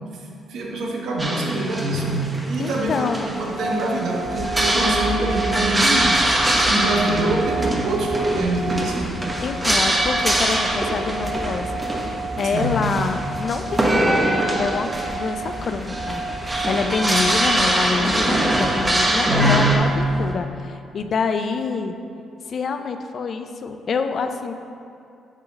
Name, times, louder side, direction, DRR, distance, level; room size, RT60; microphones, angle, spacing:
voice 1, 0.5-9.2 12.5-12.8 19.3-19.7, right 1 dB, 70° right, -1 dB, 1.2 m, -24 dB
sound 1, 1.2-19.8, right 1 dB, 20° right, 1.2 m, -23 dB
voice 2, 2.6-3.3 9.4-11.8 12.4-21.9 22.5-24.5, left 5 dB, 55° left, 7 dB, 0.5 m, -26 dB
sound 2, 3.3-20.4, right 3 dB, 45° right, 1.4 m, -32 dB
sound 3, 4.2-20.3, right 1 dB, ahead, 1.4 m, -35 dB
9.0 x 3.7 x 5.3 m, 2.5 s
supercardioid pair, 55°, 0 cm